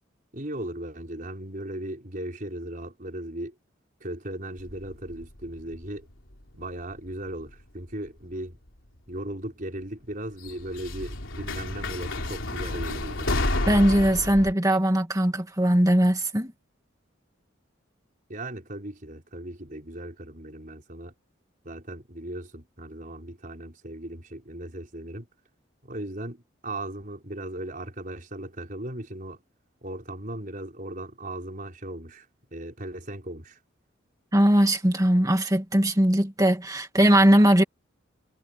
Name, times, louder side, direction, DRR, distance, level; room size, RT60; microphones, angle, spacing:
voice 1, 0.3-3.5 4.0-6.1 6.5-8.6 9.1-13.3 18.3-21.1 21.6-25.3 25.8-29.4 29.8-32.3 32.5-33.6, right 1 dB, 40° right, 5.0 m, -37 dB
sound 1, 4.6-6.6 6.9-7.6 8.7-8.8 10.4-14.5, left 2 dB, 80° left, 3.4 m, -31 dB
voice 2, 13.7-16.5 34.3-37.6, right 1 dB, 20° right, 2.2 m, -20 dB
head